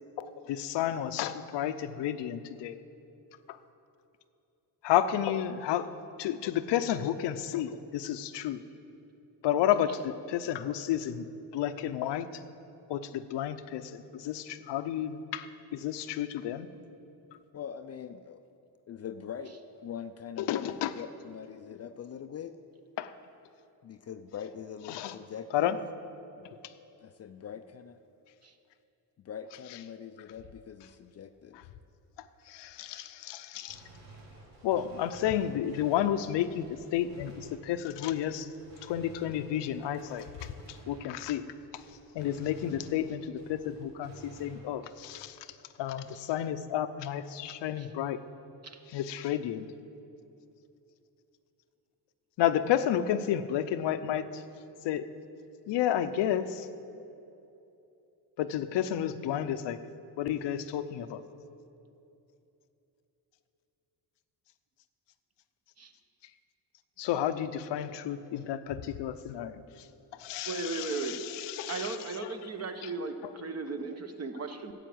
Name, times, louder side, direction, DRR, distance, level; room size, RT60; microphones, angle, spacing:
voice 1, 0.2-2.8 3.5-3.6 4.8-5.9 6.2-8.6 9.4-11.3 11.5-12.3 12.9-16.7 20.4-20.9 23.0-23.1 24.9-25.1 25.5-25.8 32.5-33.8 34.6-38.5 38.8-40.3 40.9-41.4 42.1-45.4 45.8-48.2 48.9-49.7 52.4-54.4 54.8-55.0 55.7-56.7 58.4-59.8 60.2-61.2 67.0-69.6 70.2-72.0 72.2-72.3 72.8-72.9, left 10 dB, 85° left, 11 dB, 0.7 m, -31 dB
voice 2, 17.5-18.4 18.9-22.5 23.8-25.8 26.4-26.5 27.0-28.0 29.2-31.6, left 8 dB, 40° left, 9 dB, 0.4 m, -43 dB
Gunshot gunfire, 33.7-41.5 41.7-45.1, right 2 dB, 85° right, 2.5 m, -54 dB
voice 3, 70.5-71.2 71.7-74.7, right 4 dB, 35° right, 7 dB, 1.0 m, -36 dB
10.0 x 8.3 x 7.8 m, 2.9 s
cardioid pair, 115°, 41 cm